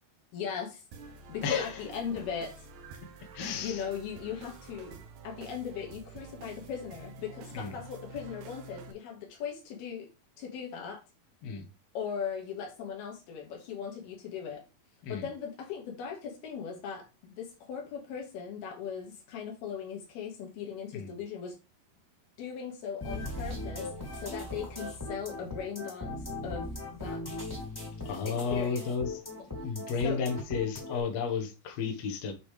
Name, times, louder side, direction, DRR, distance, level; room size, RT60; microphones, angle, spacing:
voice 1, 0.3-0.8 1.3-2.7 3.6-5.0 5.2-10.1 10.4-11.0 11.9-14.6 15.1-21.6 22.4-26.1 26.4-27.2 28.2-28.8 30.0-30.2, left 7 dB, 80° left, 3.8 m, -39 dB
sound 1, 0.9-8.9, right 4 dB, 65° right, 2.0 m, -48 dB
voice 2, 1.4-1.8 3.3-3.8 7.5-7.7 11.4-11.7 15.0-15.3 20.9-21.2 28.1-29.2 29.6-32.3, left 5 dB, 55° left, 2.0 m, -32 dB
sound 2, 23.0-31.0, left 2 dB, 5° left, 2.0 m, -38 dB
8.4 x 5.4 x 3.3 m
omnidirectional pair, 4.4 m